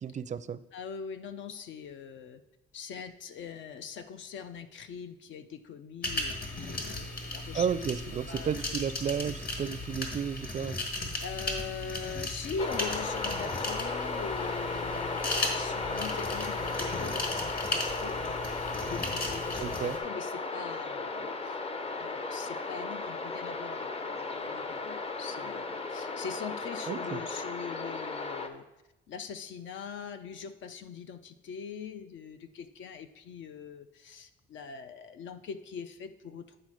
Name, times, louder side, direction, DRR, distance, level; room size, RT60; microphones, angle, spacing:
voice 1, 0.0-0.6 7.5-10.8 19.6-20.0 26.9-27.2, right 7 dB, 40° right, 15 dB, 0.4 m, -32 dB
voice 2, 0.7-2.4 2.7-7.7 8.3-8.5 9.0-9.1 11.2-21.6 22.0-28.6 29.1-36.6, left 6 dB, 70° left, 9 dB, 0.6 m, -42 dB
sound 1, 6.0-20.0, left 2 dB, 50° left, 1.7 m, -36 dB
sound 2, 12.6-28.5, left 3 dB, 30° left, 0.7 m, -35 dB
9.3 x 4.3 x 4.9 m, 0.97 s
cardioid pair, 90°, 20 cm